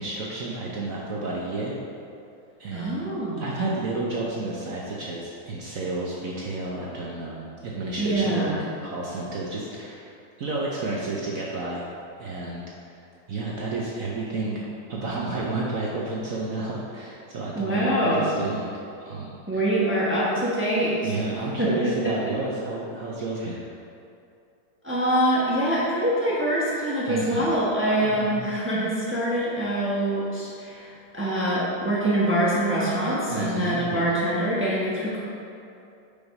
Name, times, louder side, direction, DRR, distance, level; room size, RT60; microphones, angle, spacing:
voice 1, 0.0-1.7 2.6-3.0 3.4-8.5 8.8-10.1 10.4-11.9 12.2-12.6 13.0-14.6 14.9-18.7 19.0-19.6 21.0-23.6 27.1-27.5 28.0-28.5 33.3-34.1, right 3 dB, 65° right, -4 dB, 0.8 m, -31 dB
voice 2, 2.7-3.6 8.0-8.6 17.5-18.2 19.5-21.1 21.6-21.7 24.8-35.2, right 1 dB, 10° right, -8 dB, 0.7 m, -24 dB
5.3 x 4.7 x 5.3 m, 2.6 s
omnidirectional pair, 2.2 m